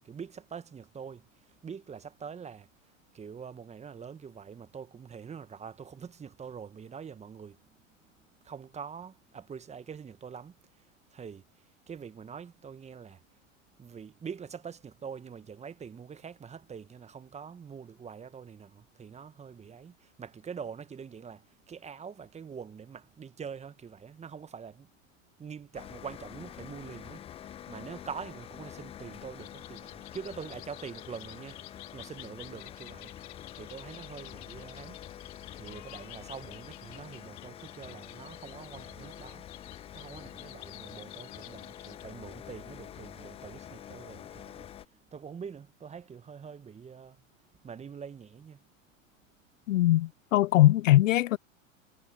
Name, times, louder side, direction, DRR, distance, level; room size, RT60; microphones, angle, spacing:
voice 1, 0.0-8.0 8.4-13.2 13.8-24.9 25.4-47.2 47.6-48.6, right 6 dB, 15° right, 1.3 m, -45 dB
sound 1, 25.7-44.9, left 10 dB, 15° left, 0.5 m, -47 dB
sound 2, 29.4-42.0, left 23 dB, 55° left, 3.9 m, -51 dB
voice 2, 49.7-51.4, left 15 dB, 75° left, 0.5 m, -21 dB
hypercardioid pair, 100°, 40 cm